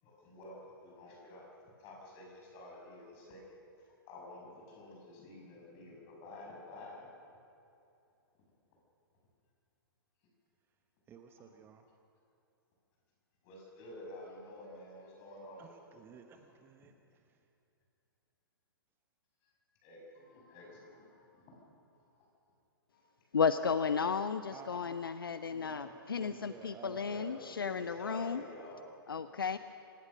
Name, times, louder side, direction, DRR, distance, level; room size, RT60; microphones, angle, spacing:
voice 1, 0.0-1.5 1.8-3.4 3.8-7.1 11.4-11.5 13.4-15.8 16.3-16.6 19.4-19.5 19.8-21.6 21.9-22.3 22.9-23.0 23.6-24.1 24.7-24.8 25.5-25.7 26.1-26.3 26.9-28.9, left 1 dB, 35° left, -1 dB, 7.1 m, -50 dB
voice 2, 11.1-11.8 15.6-16.9 24.5-25.0 25.5-27.2, right 7 dB, 20° right, 5 dB, 1.1 m, -53 dB
voice 3, 23.3-28.4 29.1-29.6, left 6 dB, 70° left, 12 dB, 0.7 m, -33 dB
26.5 x 16.0 x 6.5 m, 2.7 s
figure-of-eight pair, 115°, 12 cm